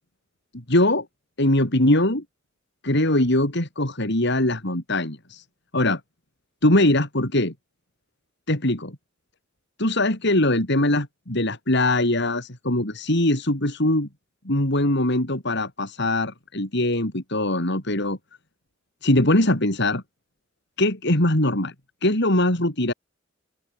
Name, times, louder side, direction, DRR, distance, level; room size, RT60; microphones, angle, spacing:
voice 1, 0.7-1.1 1.4-2.2 2.8-5.4 5.7-6.0 6.6-7.5 8.5-8.9 9.8-14.1 14.5-18.2 19.0-20.0 20.8-21.7 22.0-22.9, left 1 dB, 60° left, 5.3 m, -21 dB
open air
head